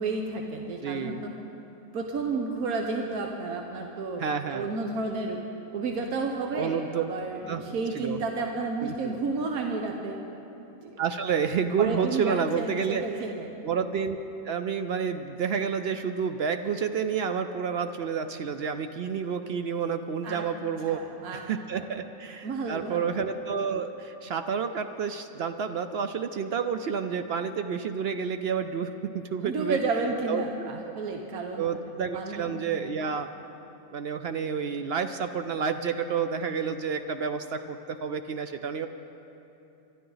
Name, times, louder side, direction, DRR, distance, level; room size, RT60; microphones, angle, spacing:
voice 1, 0.0-1.3 1.9-4.2 4.5-5.4 5.7-10.2 10.7-11.0 11.8-13.5 20.2-20.4 20.9-21.4 22.4-23.1 29.4-31.6 32.1-32.5, right 3 dB, 85° right, 2 dB, 1.4 m, -31 dB
voice 2, 0.8-1.2 4.2-4.7 6.5-7.0 7.5-7.6 7.9-8.2 8.8-9.2 11.0-13.0 13.6-14.2 14.4-21.0 21.3-29.8 30.3-30.7 31.6-33.3 33.9-38.9, right 6 dB, 60° right, 8 dB, 0.6 m, -30 dB
25.5 x 12.0 x 3.9 m, 2.9 s
omnidirectional pair, 1.5 m